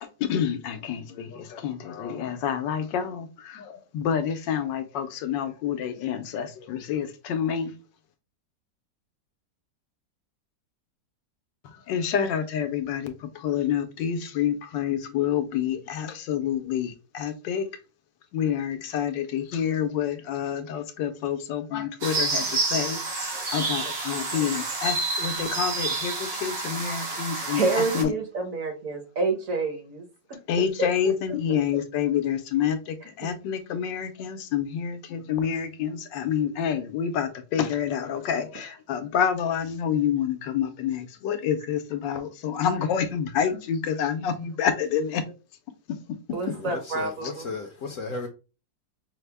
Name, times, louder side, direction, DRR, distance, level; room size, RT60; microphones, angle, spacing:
voice 1, 0.0-7.7 11.6-17.7 18.3-27.6 27.9-28.1 30.5-45.2 45.9-46.2, left 8 dB, 85° left, 1.4 m, -28 dB
sound 1, 22.0-28.0, right 3 dB, 75° right, 1.9 m, -29 dB
voice 2, 27.5-31.1 33.2-33.3 46.3-47.6, right 3 dB, 55° right, 1.2 m, -29 dB
voice 3, 46.5-48.3, left 3 dB, 60° left, 0.9 m, -35 dB
5.7 x 2.1 x 3.3 m
omnidirectional pair, 1.9 m